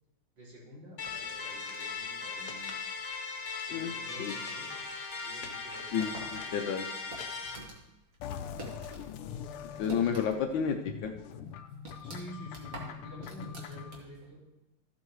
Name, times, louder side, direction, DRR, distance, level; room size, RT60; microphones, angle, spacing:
voice 1, 0.4-2.6 3.7-4.8 5.1-6.2 9.7-10.4 12.0-14.4, right 1 dB, 60° right, -5 dB, 3.6 m, -49 dB
sound 1, 1.0-7.5, left 4 dB, 50° left, 1.3 m, -38 dB
voice 2, 5.9-6.9 9.0-9.1 9.8-11.1, left 7 dB, 70° left, 5 dB, 1.2 m, -31 dB
sound 2, 6.0-9.1 9.4-10.6 10.9-11.0 11.4-14.3, right 1 dB, 40° right, 1.9 m, -47 dB
sound 3, 8.2-14.0, left 7 dB, 85° left, 1.5 m, -43 dB
13.5 x 8.1 x 3.1 m, 0.95 s
omnidirectional pair, 2.4 m